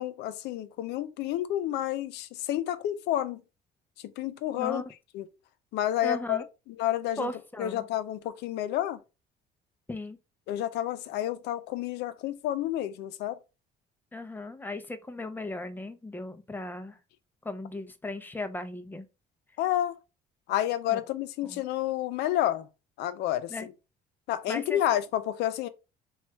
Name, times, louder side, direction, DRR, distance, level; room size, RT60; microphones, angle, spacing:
voice 1, 0.0-3.4 4.0-4.8 5.1-5.3 5.7-7.3 7.6-9.0 10.5-13.4 19.6-20.0 20.5-22.7 23.0-23.7 24.3-25.7, left 13 dB, 80° left, 0.5 m, -30 dB
voice 2, 4.5-4.9 6.0-6.5 7.2-7.8 9.9-10.2 14.1-17.0 17.4-19.1 20.9-21.0 21.4-21.6 23.5-23.7 24.5-24.8, left 2 dB, 10° left, 0.5 m, -37 dB
3.1 x 2.3 x 4.2 m
cardioid pair, 110°, 17 cm